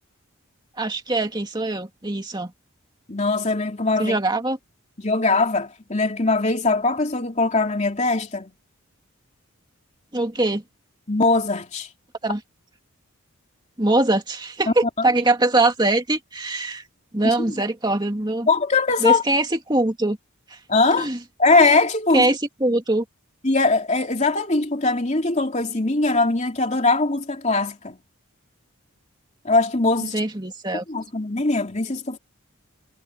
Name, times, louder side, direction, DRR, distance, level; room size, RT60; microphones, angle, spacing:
voice 1, 0.8-2.5 4.0-4.6 10.1-10.6 12.2-12.4 13.8-16.8 17.1-18.5 19.0-20.2 20.5-20.6 21.0-21.2 22.1-23.0 30.0-30.8, right 2 dB, 20° right, 2.2 m, -22 dB
voice 2, 3.1-4.2 5.0-8.5 11.1-11.9 14.7-14.8 18.5-19.2 20.7-21.1 21.4-22.3 23.4-28.0 29.4-30.1 30.9-32.2, left 3 dB, 30° left, 3.1 m, -21 dB
head